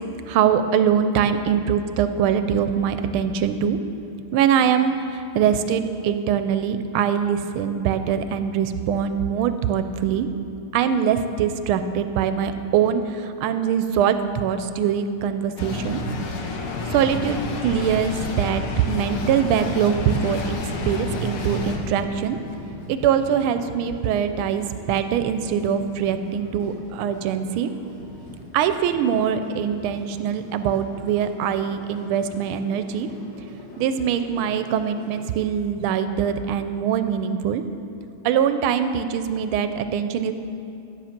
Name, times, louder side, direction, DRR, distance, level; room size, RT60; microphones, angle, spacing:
voice 1, 0.3-3.8 4.3-10.3 10.7-16.0 16.9-20.6 20.8-22.4 22.9-27.7 28.5-33.1 33.8-37.6 38.2-40.3, right 8 dB, 90° right, 10 dB, 1.5 m, -23 dB
sound 1, 15.6-21.8, left 2 dB, 85° left, 2.1 m, -29 dB
sound 2, 20.2-35.4, left 1 dB, 55° left, 2.9 m, -43 dB
13.0 x 10.0 x 5.8 m, 2.7 s
omnidirectional pair, 2.3 m